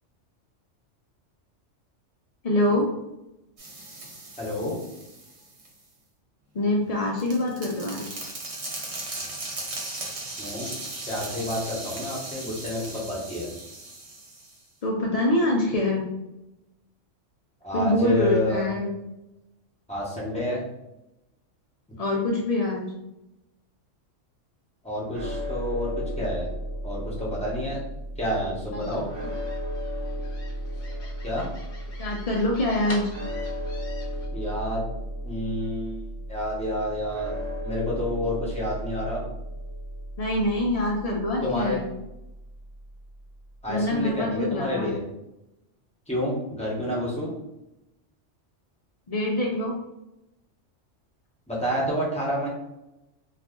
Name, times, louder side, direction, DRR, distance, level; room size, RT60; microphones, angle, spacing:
voice 1, 2.4-2.9 6.5-8.2 14.8-16.1 17.7-18.9 22.0-22.9 28.7-29.0 32.0-33.1 40.2-41.8 43.7-44.9 49.1-49.8, left 1 dB, 85° left, -2 dB, 0.3 m, -25 dB
sound 1, 3.6-5.7 6.7-14.6, right 2 dB, 40° right, 0.5 m, -38 dB
voice 2, 4.4-4.8 10.4-10.7 11.1-13.5 17.6-18.7 19.9-20.6 24.8-26.5 26.8-27.8 28.2-29.1 31.2-31.5 34.3-34.8 35.2-37.3 37.6-39.2 41.4-41.8 43.6-45.0 46.1-47.3 51.5-52.5, left 1 dB, 5° left, -6 dB, 0.7 m, -29 dB
sound 2, 25.1-43.4, equal, 75° right, 1.0 m, -35 dB
sound 3, 28.8-34.3, left 2 dB, 55° left, 0.9 m, -44 dB
2.4 x 2.4 x 3.6 m, 0.91 s
omnidirectional pair, 1.3 m